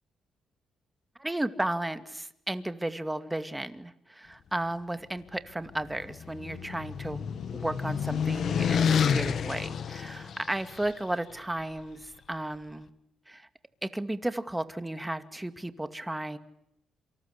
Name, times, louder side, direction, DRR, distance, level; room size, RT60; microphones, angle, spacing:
voice 1, 1.2-12.9 13.3-13.5 13.8-16.4, right 1 dB, 10° right, 10 dB, 2.2 m, -34 dB
sound 1, 5.7-10.9, left 7 dB, 60° left, 1.9 m, -29 dB
28.0 x 25.5 x 8.3 m, 0.78 s
cardioid pair, 90°, 0 cm